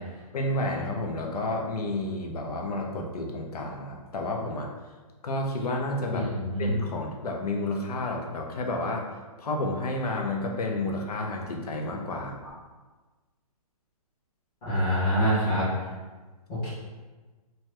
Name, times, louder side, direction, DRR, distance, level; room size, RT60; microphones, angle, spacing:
voice 1, 0.3-4.7 5.2-6.3 6.6-9.1 9.4-12.4, left 2 dB, 85° left, 1 dB, 0.6 m, -30 dB
voice 2, 6.1-6.7 14.6-15.7 16.5-16.7, equal, 15° left, -11 dB, 1.0 m, -25 dB
2.7 x 2.2 x 3.2 m, 1.3 s
hypercardioid pair, 175°, 19 cm